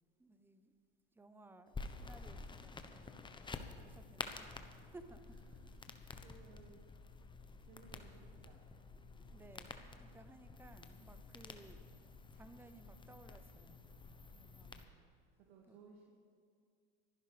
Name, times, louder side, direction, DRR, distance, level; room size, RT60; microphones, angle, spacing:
voice 1, 0.2-0.7 1.1-3.2 3.8-5.4 9.0-11.8 12.3-13.8 14.3-14.7 15.7-15.8, right 2 dB, 5° right, 10 dB, 0.8 m, -59 dB
sound 1, 1.7-14.8, left 3 dB, 15° left, 1.0 m, -50 dB
voice 2, 2.9-3.4 4.7-4.9 5.5-6.9 7.6-8.6 13.8-14.9 15.4-16.0, right 5 dB, 65° right, -2 dB, 2.2 m, -63 dB
25.0 x 11.0 x 3.4 m, 2.2 s
hypercardioid pair, 90°, 30 cm